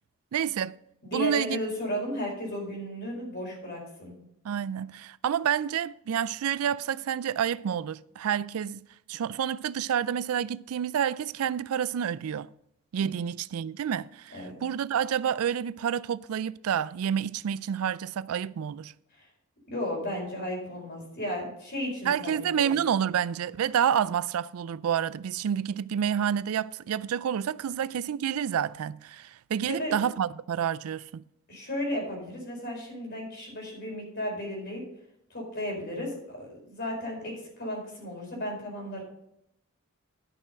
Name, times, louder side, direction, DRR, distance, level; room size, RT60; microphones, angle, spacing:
voice 1, 0.3-0.8 1.1-1.6 4.4-8.8 9.1-12.5 12.9-18.9 22.0-31.2, right 8 dB, 80° right, 0.4 m, -29 dB
voice 2, 1.1-4.1 13.0-13.1 14.3-14.5 19.7-22.7 29.7-29.9 31.5-34.8 35.3-39.0, equal, 50° left, 4.4 m, -34 dB
11.0 x 6.2 x 5.3 m
head